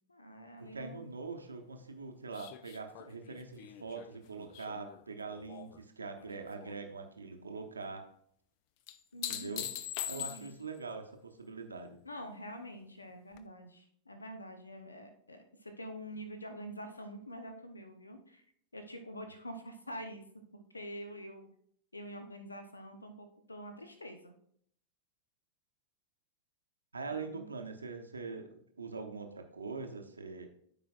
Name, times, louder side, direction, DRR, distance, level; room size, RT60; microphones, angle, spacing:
voice 1, 0.1-1.0 9.1-9.8 10.1-10.5 12.0-18.4 18.7-20.4 20.7-21.5 21.9-24.3 27.1-27.5, equal, 80° left, 7 dB, 0.8 m, -46 dB
voice 2, 0.6-8.0 9.3-9.7 10.0-12.0 26.9-30.5, right 4 dB, 75° right, 4 dB, 0.9 m, -43 dB
sound 1, 2.3-5.8 6.2-6.8 8.9-10.8 13.3-13.4, left 11 dB, 45° left, 0.5 m, -43 dB
13.5 x 5.0 x 2.4 m, 0.66 s
figure-of-eight pair, 90°, 0 cm